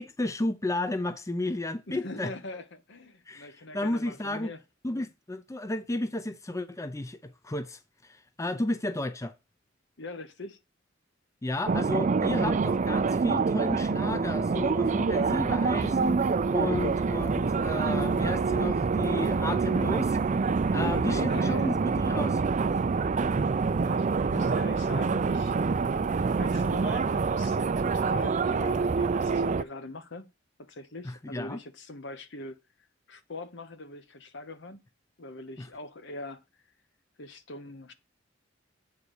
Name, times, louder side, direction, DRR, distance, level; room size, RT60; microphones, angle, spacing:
voice 1, 0.0-2.3 3.3-4.5 4.8-9.3 11.4-20.2 20.7-22.4 31.0-31.6 35.6-35.7, left 2 dB, 15° left, 0.5 m, -33 dB
voice 2, 1.9-4.6 10.0-10.6 20.6-21.8 23.8-25.5 26.4-30.3 30.7-32.6 33.1-34.8 35.2-36.4 37.2-37.9, left 2 dB, 65° left, 1.2 m, -42 dB
sound 1, 11.7-29.6, right 4 dB, 40° right, 0.4 m, -26 dB
8.4 x 4.1 x 6.3 m
head